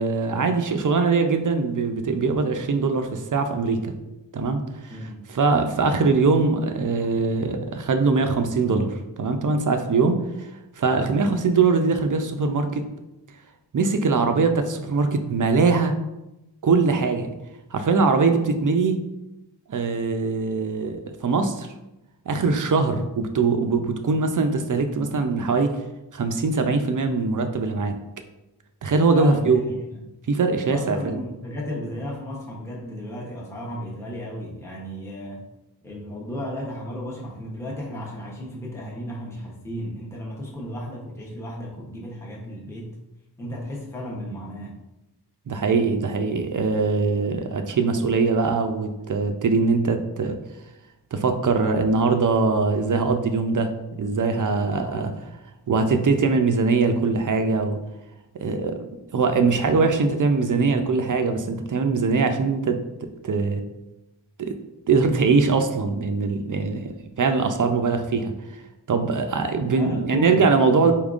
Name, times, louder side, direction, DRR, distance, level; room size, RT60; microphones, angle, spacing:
voice 1, 0.0-3.9 4.3-5.0 5.3-10.5 10.8-12.8 13.7-15.9 16.6-17.3 17.7-19.0 19.7-21.7 22.3-25.8 26.1-27.9 28.8-29.6 30.3-31.2 45.5-50.3 51.1-53.7 54.0-55.1 55.7-57.8 58.4-62.8 63.2-63.6 64.4-64.6 64.9-66.9 67.2-68.3 68.9-70.9, right 4 dB, 50° right, 6 dB, 0.5 m, -22 dB
voice 2, 4.9-5.7 29.1-30.0 30.7-35.5 35.8-42.9 43.4-44.8 54.7-55.1 69.7-70.9, left 1 dB, 5° left, -3 dB, 0.8 m, -34 dB
4.5 x 3.6 x 2.4 m, 0.95 s
wide cardioid pair, 85°, 41 cm